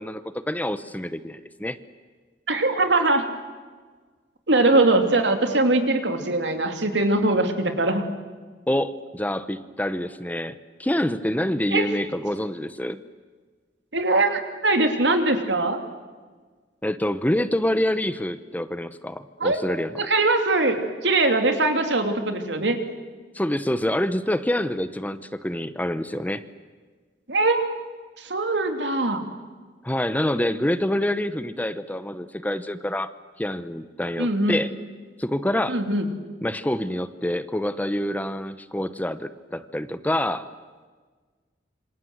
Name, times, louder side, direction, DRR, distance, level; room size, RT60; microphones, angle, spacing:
voice 1, 0.0-1.8 8.7-10.5 10.8-13.0 16.8-20.0 23.3-26.4 29.8-33.1 33.4-34.7 35.2-35.8 36.4-40.5, left 1 dB, 10° left, 13 dB, 0.8 m, -26 dB
voice 2, 2.5-3.2 4.5-8.0 11.7-11.9 13.9-15.8 19.4-19.6 19.9-22.8 27.3-27.6 28.2-29.2 34.2-34.6 35.7-36.1, right 2 dB, 80° right, 6 dB, 3.0 m, -21 dB
27.0 x 26.0 x 8.0 m, 1.4 s
head